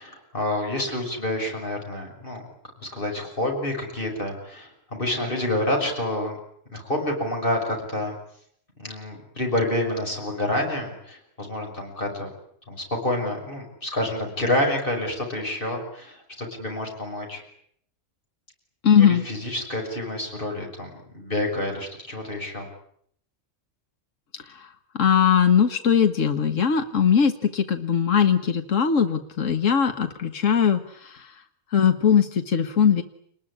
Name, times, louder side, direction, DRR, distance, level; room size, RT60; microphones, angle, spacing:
voice 1, 0.0-2.4 2.8-6.4 6.7-8.1 8.8-12.3 12.7-17.4 19.0-22.7, left 1 dB, 45° left, 2 dB, 6.4 m, -28 dB
voice 2, 18.8-19.2 24.4-24.7 24.9-31.3 31.7-33.0, left 7 dB, 80° left, 7 dB, 1.7 m, -20 dB
29.0 x 20.5 x 9.9 m, 0.68 s
omnidirectional pair, 1.3 m